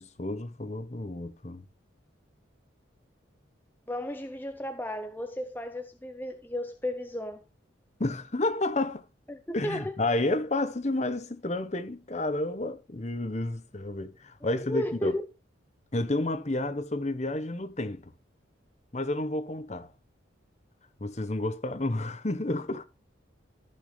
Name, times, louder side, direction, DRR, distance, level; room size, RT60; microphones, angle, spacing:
voice 1, 0.0-1.6 8.0-9.0 9.5-15.2 15.9-18.1 18.9-19.9 21.0-22.8, left 2 dB, 35° left, 1.0 m, -30 dB
voice 2, 3.9-7.4 9.3-9.9 14.4-15.1, left 1 dB, 10° left, 0.6 m, -34 dB
14.0 x 6.3 x 3.2 m
head